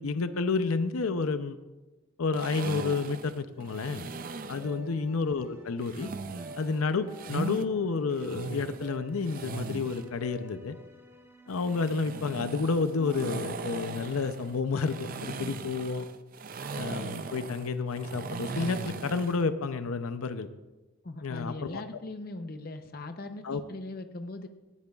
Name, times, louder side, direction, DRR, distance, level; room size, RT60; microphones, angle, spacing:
voice 1, 0.0-1.6 2.2-4.1 4.5-6.1 6.6-10.8 11.5-16.1 16.7-20.5 21.2-21.8 23.4-23.6, left 4 dB, 90° left, 11 dB, 0.6 m, -30 dB
sound 1, 2.3-4.7 5.8-7.6 8.1-10.1 11.5-19.4, right 3 dB, 40° right, 0.4 m, -38 dB
sound 2, 3.6-13.9, equal, 15° right, 1.1 m, -50 dB
voice 2, 21.0-24.5, left 2 dB, 45° left, 8 dB, 0.7 m, -40 dB
18.0 x 10.5 x 2.4 m, 1.1 s
head